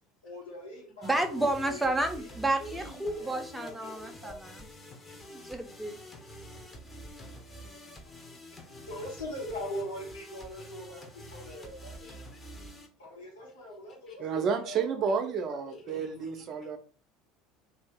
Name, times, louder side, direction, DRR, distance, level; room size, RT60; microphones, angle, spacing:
voice 1, 0.2-2.2 2.6-4.6 8.3-8.4 8.7-12.2 13.0-16.2, left 1 dB, 90° left, 1.6 m, -42 dB
sound 1, 1.0-12.9, equal, 20° left, 1.0 m, -47 dB
voice 2, 1.0-4.6 5.3-6.0, right 2 dB, 5° right, 0.8 m, -31 dB
voice 3, 6.0-8.0 11.5-11.6 12.0-12.4 14.1-14.2 15.9-16.5, left 3 dB, 40° left, 1.4 m, -57 dB
voice 4, 14.2-16.8, right 6 dB, 45° right, 0.6 m, -30 dB
2.7 x 2.7 x 3.6 m
hypercardioid pair, 70°, 0 cm